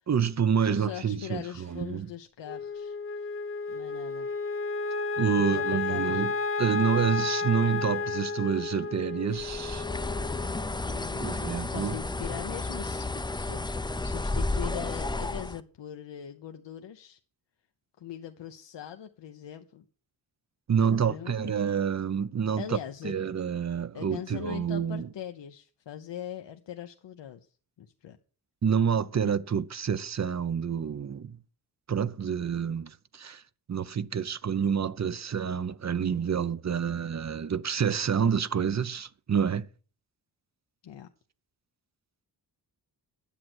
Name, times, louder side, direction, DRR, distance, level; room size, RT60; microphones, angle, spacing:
voice 1, 0.1-2.1 5.2-6.3 6.6-9.9 11.2-11.9 20.7-22.8 23.0-25.1 28.6-31.4 31.9-33.4 33.7-39.7, right 7 dB, 40° right, 0.7 m, -28 dB
voice 2, 0.6-3.0 3.7-4.3 5.3-6.2 10.8-11.4 11.7-17.2 18.0-19.8 20.9-21.6 22.6-23.2 23.9-27.4 27.8-28.2 40.8-41.1, left 10 dB, 80° left, 0.9 m, -41 dB
Wind instrument woodwind instrument, 2.4-10.9, left 4 dB, 30° left, 0.9 m, -32 dB
Bird, 9.4-15.6, left 2 dB, 10° left, 0.5 m, -32 dB
10.0 x 7.6 x 6.1 m
cardioid pair, 75°, 42 cm